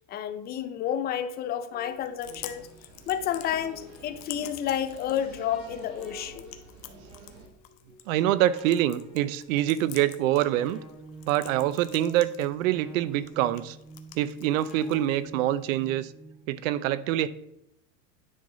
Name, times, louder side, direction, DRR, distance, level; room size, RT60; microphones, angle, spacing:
voice 1, 0.1-2.7 3.1-6.5, left 9 dB, 25° left, 11 dB, 0.5 m, -30 dB
sound 1, 1.7-16.6, right 1 dB, ahead, 1.6 m, -49 dB
Chewing mastication, 1.9-15.9, left 13 dB, 55° left, 0.9 m, -49 dB
sound 2, 2.2-7.5, right 4 dB, 45° right, 1.9 m, -49 dB
voice 2, 8.1-10.8 11.3-13.8 14.2-16.1 16.5-17.3, right 13 dB, 85° right, 16 dB, 0.7 m, -25 dB
9.8 x 5.4 x 3.9 m, 0.80 s
supercardioid pair, 155°, 39 cm